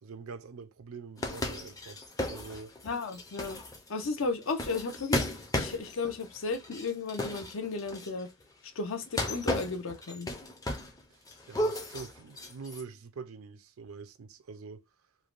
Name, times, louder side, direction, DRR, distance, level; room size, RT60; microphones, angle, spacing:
voice 1, 0.0-2.8 11.1-11.2 11.5-14.9, right 5 dB, 80° right, 0.5 m, -45 dB
sound 1, 1.2-8.3 9.0-11.0 11.3-12.8, left 1 dB, 15° left, 0.5 m, -35 dB
voice 2, 2.8-3.6 3.9-5.2 5.5-8.3 8.8-10.3, left 4 dB, 65° left, 0.6 m, -34 dB
3.2 x 2.1 x 2.4 m
head